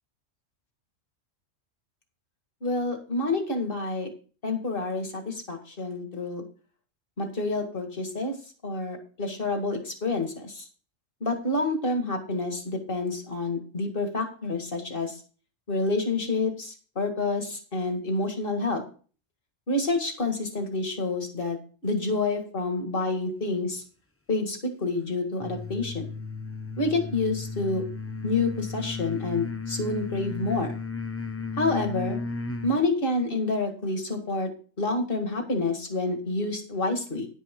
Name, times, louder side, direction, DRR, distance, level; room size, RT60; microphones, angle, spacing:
voice 1, 2.6-4.1 4.4-6.4 7.2-8.3 8.6-10.6 11.2-15.1 15.7-18.8 19.7-21.6 21.8-23.8 24.3-26.1 26.8-27.8 28.2-30.7 31.6-32.2 32.6-34.5 34.8-37.3, left 2 dB, 45° left, 4 dB, 2.2 m, -28 dB
sound 1, 25.4-32.8, left 4 dB, 15° left, 0.5 m, -34 dB
10.0 x 9.8 x 3.8 m, 0.38 s
omnidirectional pair, 1.3 m